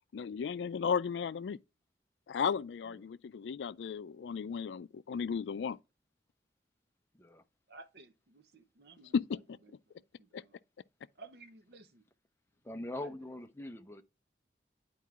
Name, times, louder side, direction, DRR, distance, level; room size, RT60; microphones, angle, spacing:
voice 1, 0.1-1.6 2.3-5.8 9.1-9.6 10.3-10.4, left 6 dB, 85° left, 0.3 m, -34 dB
voice 2, 7.7-9.1 9.9-10.5 11.2-12.0 13.0-13.1, right 3 dB, 70° right, 0.7 m, -54 dB
voice 3, 12.6-14.0, left 1 dB, 15° left, 0.6 m, -42 dB
11.0 x 4.6 x 2.4 m
head